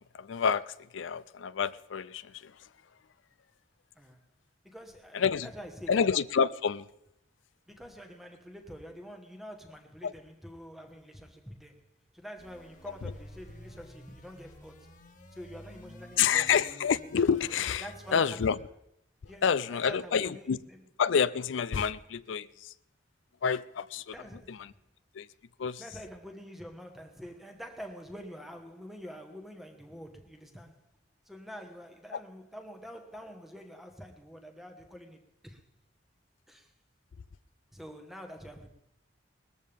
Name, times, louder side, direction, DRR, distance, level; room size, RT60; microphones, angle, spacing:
voice 1, 0.1-2.5 5.1-5.5 5.9-6.9 10.0-10.1 16.2-17.8 18.1-18.6 19.4-20.6 21.0-22.7 23.4-24.1 24.5-24.7 25.1-25.3 25.6-25.8, left 6 dB, 90° left, 0.5 m, -28 dB
voice 2, 4.6-6.1 7.7-11.8 12.1-15.0 15.3-16.7 17.8-18.6 19.3-20.8 24.1-24.8 25.8-30.9 31.2-35.6 36.5-36.7 37.7-38.7, equal, ahead, 1.3 m, -47 dB
sound 1, 12.4-18.6, left 1 dB, 45° left, 1.5 m, -51 dB
20.0 x 14.0 x 3.5 m
head